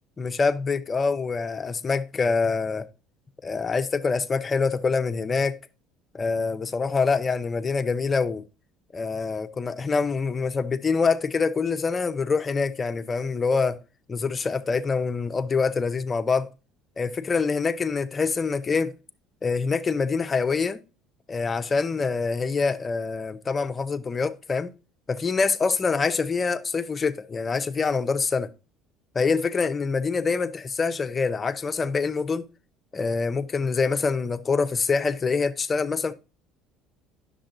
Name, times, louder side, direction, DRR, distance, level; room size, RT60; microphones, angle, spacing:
voice 1, 0.2-2.9 3.4-5.6 6.1-8.4 8.9-13.8 14.1-16.5 17.0-18.9 19.4-20.8 21.3-24.7 25.1-28.5 29.1-32.5 32.9-36.1, left 4 dB, 25° left, 0.6 m, -25 dB
10.0 x 6.7 x 2.6 m
supercardioid pair, 105°, 0 cm